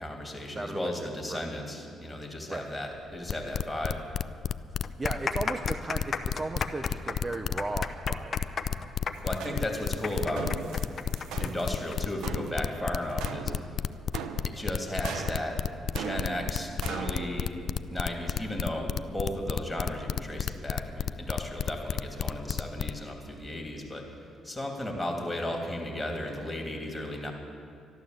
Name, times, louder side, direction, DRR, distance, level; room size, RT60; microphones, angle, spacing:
voice 1, 0.0-4.0 9.2-10.5 11.4-13.5 14.5-15.6 16.0-17.6 17.9-24.0 24.4-27.3, left 1 dB, 10° left, 1 dB, 2.8 m, -35 dB
voice 2, 0.5-1.4 2.5-2.7 5.0-8.4, right 2 dB, 25° right, 7 dB, 0.6 m, -36 dB
sound 1, 3.3-22.9, left 8 dB, 60° left, 0.4 m, -31 dB
sound 2, 4.0-4.1 4.7-12.0 12.3-12.4 13.1-13.4, left 5 dB, 45° left, 0.9 m, -34 dB
sound 3, 9.1-17.3, right 6 dB, 90° right, 0.9 m, -40 dB
13.0 x 11.5 x 7.9 m, 2.4 s
cardioid pair, 90°, 0 cm